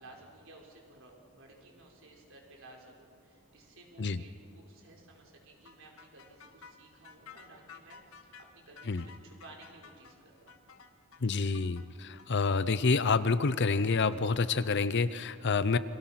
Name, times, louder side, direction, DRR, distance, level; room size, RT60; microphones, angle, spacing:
voice 1, 0.0-10.6, right 2 dB, 60° right, -1 dB, 4.9 m, -55 dB
sound 1, 5.6-14.2, left 6 dB, 70° left, 1.7 m, -54 dB
voice 2, 11.2-15.8, left 4 dB, 50° left, 14 dB, 0.7 m, -28 dB
29.0 x 24.5 x 5.9 m, 2.5 s
head